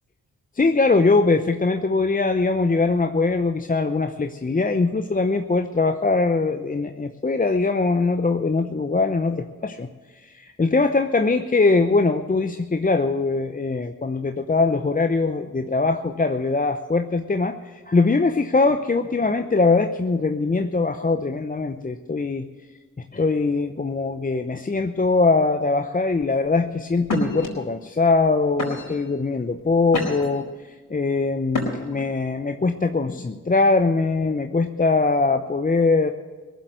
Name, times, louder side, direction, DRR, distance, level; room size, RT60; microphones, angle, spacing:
voice 1, 0.5-9.9 10.2-22.5 23.1-36.1, left 3 dB, 25° left, 6 dB, 0.8 m, -22 dB
sound 1, 26.2-26.5 27.0-27.5 28.1-28.3 28.6-29.1 29.6-30.4 31.5-32.0, left 1 dB, 60° left, 4.5 m, -28 dB
18.0 x 7.6 x 8.1 m, 1.4 s
supercardioid pair, 45°, 35 cm